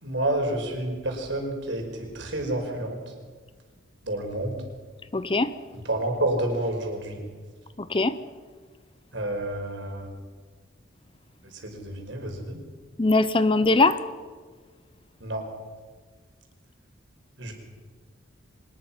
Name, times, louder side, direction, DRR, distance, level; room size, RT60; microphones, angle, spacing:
voice 1, 0.0-3.0 4.0-4.6 5.9-7.2 9.1-10.1 11.4-12.6 15.2-15.4 17.4-17.5, right 1 dB, 60° right, 2 dB, 5.0 m, -29 dB
voice 2, 5.1-5.5 7.8-8.2 13.0-14.0, left 2 dB, 25° left, 13 dB, 0.7 m, -21 dB
24.0 x 20.5 x 5.9 m, 1.5 s
head